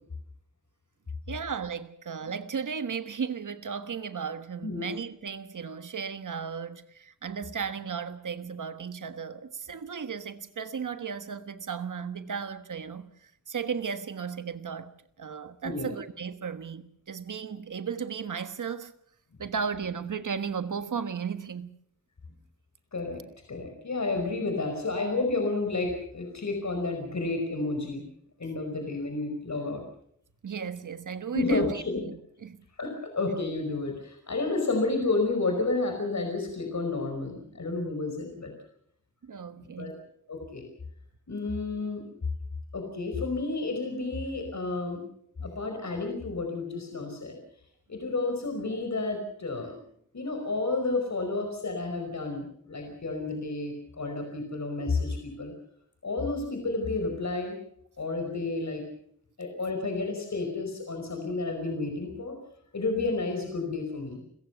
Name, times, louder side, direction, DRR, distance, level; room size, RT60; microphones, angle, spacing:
voice 1, 1.3-14.9 15.2-18.9 19.4-21.7 30.4-32.6 39.2-39.9 45.4-45.5, right 6 dB, 85° right, 1.4 m, -35 dB
voice 2, 23.5-28.0 28.4-29.8 31.3-32.0 32.8-38.5 39.6-39.9 40.3-40.6 41.3-42.0 42.7-45.0 45.4-47.4 47.9-49.8 50.1-55.5 56.0-57.6 58.0-58.8 59.4-62.3 62.7-64.2, left 3 dB, 65° left, 5.1 m, -31 dB
29.0 x 15.0 x 6.9 m
wide cardioid pair, 65°, 30 cm